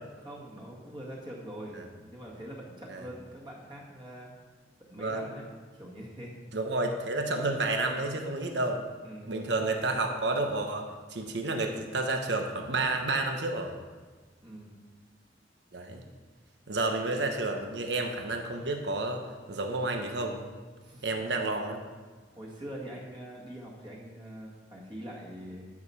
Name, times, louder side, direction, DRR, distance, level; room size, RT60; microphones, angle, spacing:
voice 1, 0.2-4.3 4.8-6.4 9.0-9.5 14.4-14.8 20.8-21.1 22.3-25.7, right 1 dB, 25° right, -3 dB, 1.8 m, -44 dB
voice 2, 5.0-5.3 6.5-8.9 9.3-13.8 15.7-16.0 16.7-19.2 19.5-20.5 21.0-21.8, right 2 dB, 75° right, 4 dB, 1.1 m, -30 dB
13.0 x 4.9 x 5.7 m, 1.4 s
head